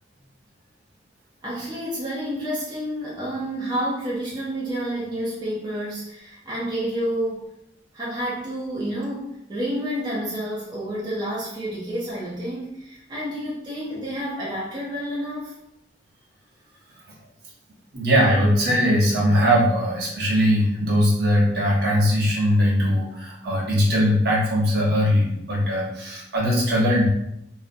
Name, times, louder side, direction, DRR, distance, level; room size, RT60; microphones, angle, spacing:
voice 1, 1.4-7.5 7.9-15.6, equal, 25° right, -6 dB, 0.5 m, -29 dB
voice 2, 17.9-27.1, equal, 60° right, -5 dB, 0.8 m, -20 dB
2.4 x 2.0 x 2.5 m, 0.80 s
head